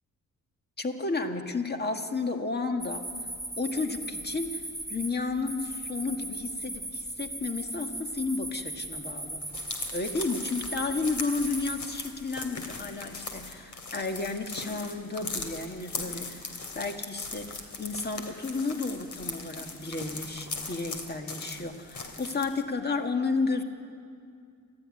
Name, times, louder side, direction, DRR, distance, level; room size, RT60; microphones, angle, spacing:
voice 1, 0.8-3.1 3.6-4.6 4.9-9.4 9.9-23.6, left 3 dB, 30° left, 5 dB, 1.8 m, -32 dB
sound 1, 2.8-11.8, right 1 dB, ahead, 3.2 m, -38 dB
sound 2, 9.4-22.6, left 3 dB, 70° left, 3.0 m, -39 dB
29.5 x 13.5 x 9.8 m, 2.3 s
cardioid pair, 105°, 31 cm